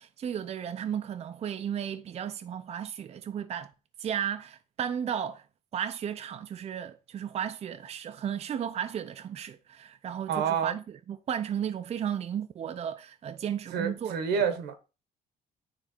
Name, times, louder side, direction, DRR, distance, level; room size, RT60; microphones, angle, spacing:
voice 1, 0.0-3.7 4.0-5.4 5.7-14.4, right 9 dB, 40° right, 0.5 m, -34 dB
voice 2, 10.3-10.7 13.7-14.7, right 7 dB, 80° right, 1.2 m, -28 dB
9.1 x 3.2 x 4.4 m
cardioid pair, 110°, 17 cm